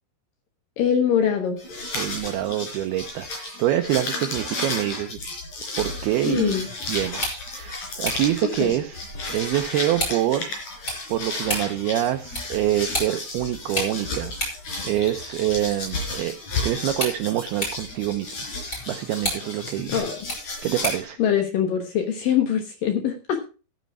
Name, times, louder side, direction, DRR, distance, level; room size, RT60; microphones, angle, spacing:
voice 1, 0.8-1.6 6.2-6.7 8.6-8.7 19.9-20.1 21.2-23.4, left 8 dB, 65° left, 6 dB, 2.3 m, -23 dB
sound 1, 1.6-21.0, left 3 dB, 40° left, 4.9 m, -33 dB
voice 2, 1.9-5.2 5.8-6.6 6.9-10.5 11.1-14.3 14.8-16.3 16.6-18.5 18.9-20.0 20.6-21.2, right 13 dB, 85° right, 7 dB, 2.2 m, -26 dB
sound 2, 7.0-21.2, equal, 20° left, 6.2 m, -35 dB
12.5 x 9.4 x 4.7 m, 0.34 s
omnidirectional pair, 5.4 m